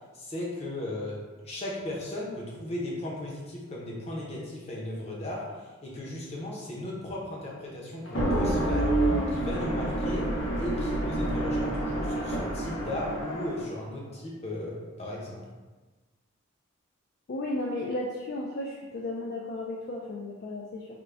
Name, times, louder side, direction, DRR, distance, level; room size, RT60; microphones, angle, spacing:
voice 1, 0.1-8.9 9.3-15.4, left 1 dB, 30° left, -4 dB, 0.8 m, -36 dB
sound 1, 8.0-13.7, right 1 dB, 75° left, 0.8 m, -28 dB
voice 2, 17.3-20.9, left 2 dB, 50° left, -3 dB, 0.3 m, -34 dB
3.7 x 2.2 x 3.3 m, 1.3 s
head